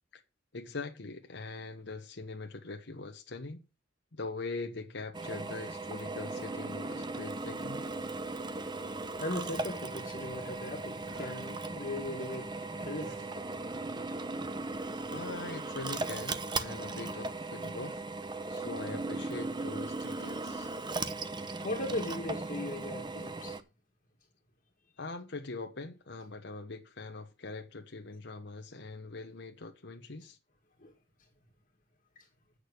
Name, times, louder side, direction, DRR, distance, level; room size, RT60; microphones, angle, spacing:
voice 1, 0.5-3.6 4.1-7.8 15.1-18.0 18.5-20.7 25.0-30.4, left 3 dB, 60° left, 1.1 m, -42 dB
Drill, 5.1-23.6, right 3 dB, 20° right, 0.7 m, -38 dB
voice 2, 8.9-15.1 21.6-23.6 30.8-30.9 32.2-32.3, left 1 dB, 40° left, 2.0 m, -39 dB
sound 1, 11.0-11.5 13.0-13.5 14.9-15.0 15.4-15.6, right 2 dB, 60° right, 1.5 m, -54 dB
8.5 x 6.5 x 6.4 m
head